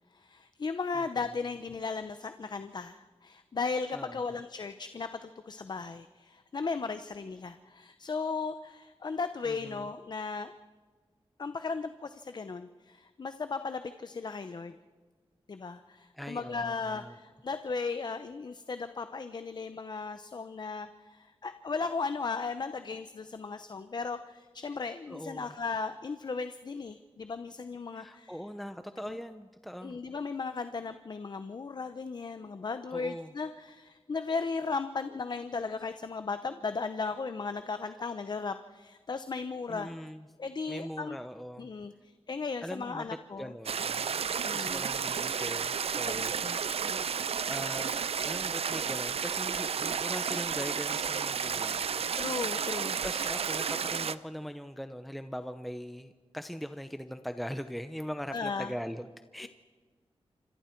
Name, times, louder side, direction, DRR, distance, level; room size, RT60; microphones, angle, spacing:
voice 1, 0.1-10.5 11.4-14.8 15.5-28.4 29.1-29.2 29.8-40.1 40.4-41.2 41.6-43.5 44.4-44.8 46.0-47.1 52.1-53.0 58.3-58.7, left 4 dB, 45° left, 10 dB, 0.7 m, -36 dB
voice 2, 3.9-4.3 9.4-9.9 16.1-17.2 25.1-25.5 27.9-30.0 32.9-33.3 37.8-37.9 39.7-40.3 40.7-41.7 42.6-44.1 44.5-46.8 47.1-52.0 53.0-59.5, equal, ahead, 9 dB, 0.7 m, -41 dB
sound 1, 43.7-54.2, right 7 dB, 70° right, 0.6 m, -32 dB
27.5 x 25.5 x 4.5 m, 1.5 s
wide cardioid pair, 150°, 11 cm